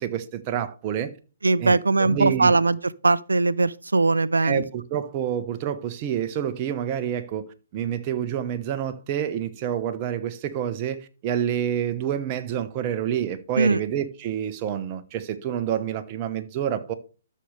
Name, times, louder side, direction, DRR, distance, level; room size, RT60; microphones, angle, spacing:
voice 1, 0.0-1.1 1.6-2.5 4.4-7.4 7.7-16.9, right 9 dB, 35° right, 1.0 m, -28 dB
voice 2, 1.4-2.8 3.0-4.6 13.6-13.8, right 3 dB, 85° right, 0.4 m, -20 dB
13.0 x 6.4 x 3.3 m
figure-of-eight pair, 135°, 0 cm